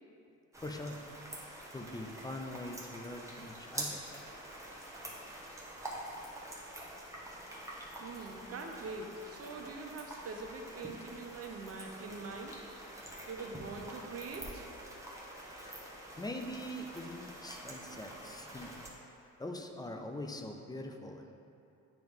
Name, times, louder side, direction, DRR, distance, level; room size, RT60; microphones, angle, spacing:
sound 1, 0.5-18.9, right 1 dB, 10° right, 1.0 m, -46 dB
voice 1, 0.6-1.0 1.7-4.0 15.5-15.8 16.2-18.8 19.4-21.4, left 1 dB, 15° left, 3 dB, 0.5 m, -43 dB
voice 2, 8.0-12.6 13.3-14.7, right 3 dB, 50° right, 2 dB, 0.8 m, -43 dB
Chewing mastication, 10.5-19.5, left 1 dB, 80° left, 0.9 m, -62 dB
8.9 x 3.0 x 3.6 m, 2.7 s
cardioid pair, 90°, 30 cm